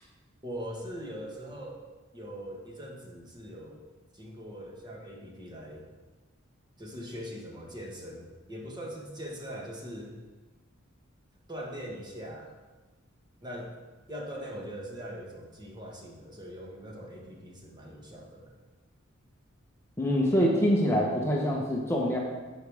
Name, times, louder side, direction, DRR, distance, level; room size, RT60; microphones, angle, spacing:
voice 1, 0.4-1.8 2.1-3.8 4.1-5.9 6.8-10.2 11.5-12.6 13.4-13.8 14.1-18.6, equal, 20° right, -1 dB, 1.6 m, -41 dB
voice 2, 20.0-22.2, equal, 15° left, -2 dB, 1.1 m, -25 dB
11.5 x 8.0 x 3.6 m, 1.2 s
head